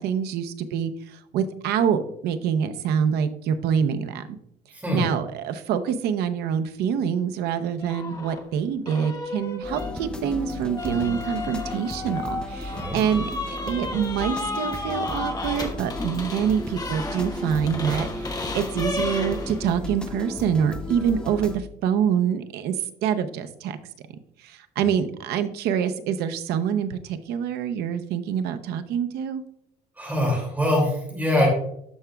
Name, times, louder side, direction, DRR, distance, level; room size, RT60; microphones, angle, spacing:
voice 1, 0.0-4.2 4.9-22.8 23.0-23.8 24.4-29.4, right 8 dB, 75° right, 9 dB, 0.7 m, -26 dB
voice 2, 4.7-5.1 12.7-13.0 24.8-24.9 30.0-31.5, left 1 dB, 10° right, -1 dB, 2.4 m, -23 dB
sound 1, 7.8-8.4 8.9-19.7, left 2 dB, 20° left, 1.1 m, -33 dB
sound 2, 9.6-21.6, left 1 dB, 5° left, 0.6 m, -35 dB
12.5 x 4.9 x 2.3 m, 0.74 s
cardioid pair, 160°, 17 cm